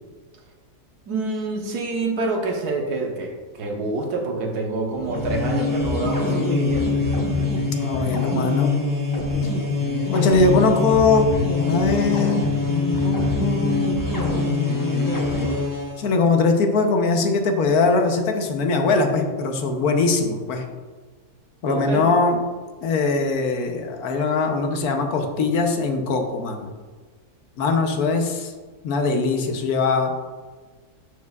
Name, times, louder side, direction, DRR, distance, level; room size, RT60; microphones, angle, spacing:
voice 1, 1.1-6.9 21.6-22.0, right 3 dB, 90° right, 1 dB, 1.5 m, -27 dB
sound 1, 5.0-16.0, left 3 dB, 20° left, 0.6 m, -23 dB
voice 2, 7.7-8.7 10.1-11.3 11.6-14.6 16.0-20.7 21.6-22.4 22.8-26.7 27.6-28.5 28.8-30.1, left 3 dB, 80° left, 4 dB, 1.3 m, -21 dB
11.5 x 4.7 x 2.4 m, 1.4 s
omnidirectional pair, 1.6 m